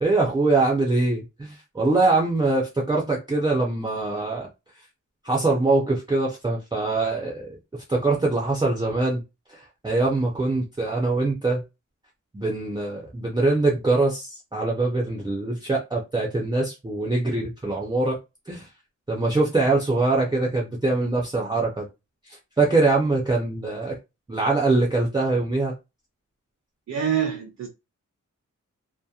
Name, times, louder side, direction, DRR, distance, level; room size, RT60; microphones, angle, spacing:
voice 1, 0.0-4.5 5.2-7.6 7.9-9.2 9.5-11.6 12.3-18.2 18.5-18.7 19.1-21.9 22.3-24.0 24.3-25.7, right 2 dB, 15° right, 0.5 m, -23 dB
voice 2, 26.9-27.7, right 8 dB, 60° right, 0.6 m, -25 dB
2.7 x 2.1 x 2.3 m
wide cardioid pair, 145°, 31 cm